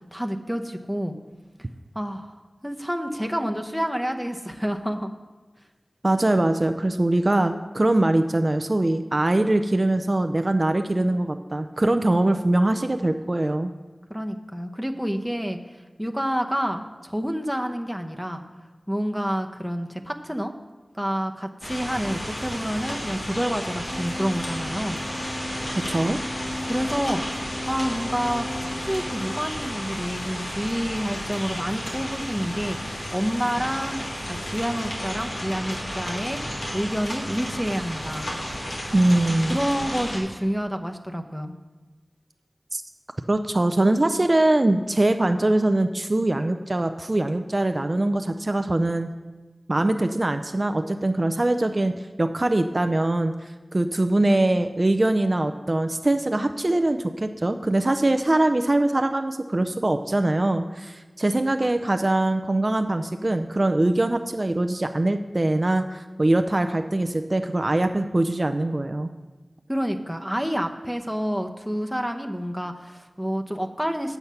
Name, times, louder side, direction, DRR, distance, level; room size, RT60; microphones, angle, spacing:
voice 1, 0.1-1.2 1.9-2.4 2.6-5.1 14.1-15.6 16.0-18.4 18.9-20.5 20.9-25.0 26.6-27.4 27.7-28.5 28.8-32.8 33.1-36.4 36.7-38.3 39.5-41.6 69.7-74.2, equal, ahead, 4 dB, 0.8 m, -28 dB
voice 2, 6.0-13.7 25.9-26.2 38.9-39.6 42.7-42.8 43.3-49.1 49.7-51.9 52.2-69.1, right 1 dB, 45° right, 8 dB, 0.4 m, -22 dB
sound 1, 21.6-40.2, equal, 85° left, 2.0 m, -33 dB
sound 2, 23.7-30.5, right 2 dB, 85° right, 1.0 m, -48 dB
sound 3, 23.9-29.5, left 1 dB, 30° left, 0.5 m, -36 dB
8.0 x 7.1 x 5.6 m, 1.2 s
wide cardioid pair, 40°, 0 cm